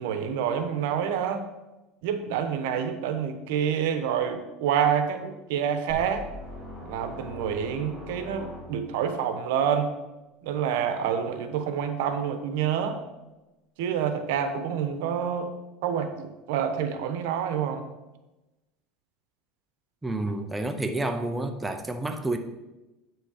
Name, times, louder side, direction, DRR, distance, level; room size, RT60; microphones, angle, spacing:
voice 1, 0.0-1.5 2.0-6.2 6.8-9.9 10.4-13.0 13.8-15.5 15.8-17.8, right 8 dB, 80° right, 8 dB, 1.1 m, -27 dB
sound 1, 5.9-9.1, left 1 dB, 10° left, 3.2 m, -41 dB
voice 2, 20.0-22.4, right 2 dB, 5° right, 5 dB, 0.6 m, -29 dB
8.5 x 6.3 x 5.0 m, 1.0 s
cardioid pair, 150°, 0 cm